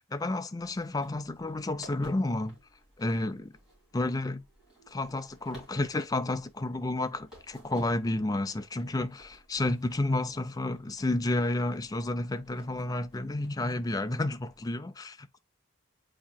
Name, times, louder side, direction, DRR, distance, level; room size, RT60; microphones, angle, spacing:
voice 1, 0.1-2.6 3.0-3.5 3.9-4.4 4.9-15.3, left 2 dB, 20° left, 0.3 m, -31 dB
sound 1, 0.6-14.6, right 1 dB, 5° right, 2.9 m, -57 dB
8.3 x 2.8 x 2.2 m
head